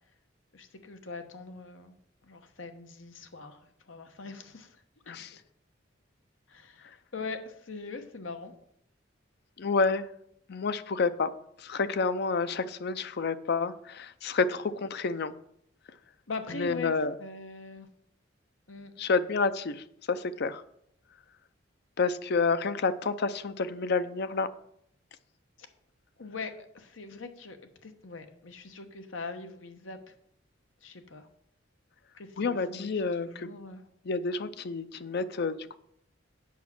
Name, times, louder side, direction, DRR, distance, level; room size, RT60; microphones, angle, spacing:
voice 1, 0.5-2.0 2.2-5.4 6.5-8.5 16.3-17.9 18.7-18.9 26.2-27.6 27.8-30.1 30.8-31.3 32.1-32.9 33.2-33.8, left 4 dB, 90° left, 7 dB, 1.1 m, -42 dB
voice 2, 9.6-10.1 10.5-11.3 11.6-15.3 16.5-17.1 19.0-20.6 22.0-24.5 32.4-33.5 34.1-35.8, left 4 dB, 60° left, 13 dB, 0.5 m, -29 dB
8.4 x 6.0 x 5.9 m, 0.72 s
head